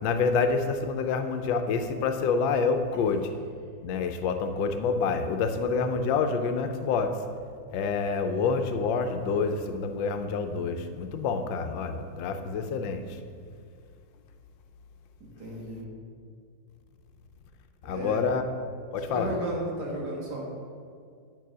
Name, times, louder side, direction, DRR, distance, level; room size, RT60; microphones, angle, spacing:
voice 1, 0.0-3.3 3.8-7.2 7.7-13.2 17.8-18.4 18.9-19.3, left 5 dB, 85° left, 7 dB, 1.4 m, -27 dB
voice 2, 15.4-15.9 17.8-18.2 19.1-20.4, right 1 dB, 60° right, -3 dB, 2.0 m, -33 dB
8.4 x 4.7 x 6.1 m, 2.2 s
omnidirectional pair, 2.0 m